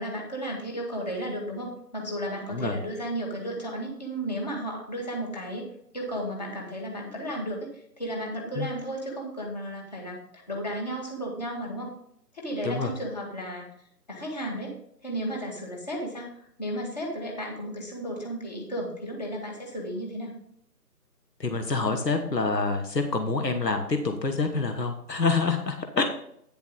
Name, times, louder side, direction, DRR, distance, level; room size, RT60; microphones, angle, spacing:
voice 1, 0.0-11.9 12.3-13.7 14.1-16.3 16.6-20.3, right 1 dB, 25° left, 0 dB, 1.9 m, -34 dB
voice 2, 21.4-26.0, left 4 dB, 75° left, 6 dB, 1.4 m, -27 dB
9.6 x 7.1 x 3.9 m, 0.71 s
figure-of-eight pair, 155°, 50 cm